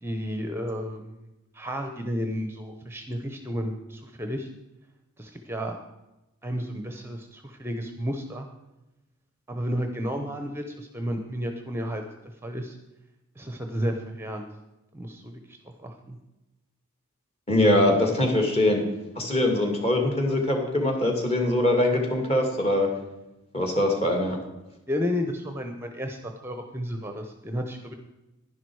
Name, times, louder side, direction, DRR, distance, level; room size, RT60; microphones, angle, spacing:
voice 1, 0.0-1.2 1.5-4.5 5.2-5.8 6.4-8.5 9.5-12.0 12.4-12.8 13.4-14.4 14.9-16.2 24.9-27.9, equal, 10° right, 5 dB, 0.8 m, -32 dB
voice 2, 17.5-18.8 19.2-22.9 23.5-24.4, left 1 dB, 30° left, 2 dB, 2.4 m, -22 dB
11.0 x 10.5 x 4.7 m, 0.98 s
head